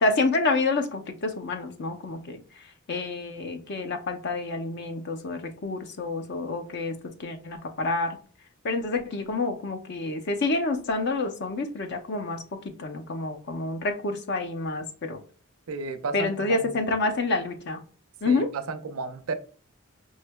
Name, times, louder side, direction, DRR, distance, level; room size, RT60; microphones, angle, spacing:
voice 1, 0.0-2.6 2.9-8.2 8.6-15.2 16.1-17.8 18.2-18.5, left 3 dB, 55° left, 5 dB, 0.6 m, -28 dB
voice 2, 15.7-16.7 18.2-19.3, right 4 dB, 85° right, 11 dB, 0.5 m, -33 dB
5.4 x 3.1 x 2.2 m, 0.41 s
head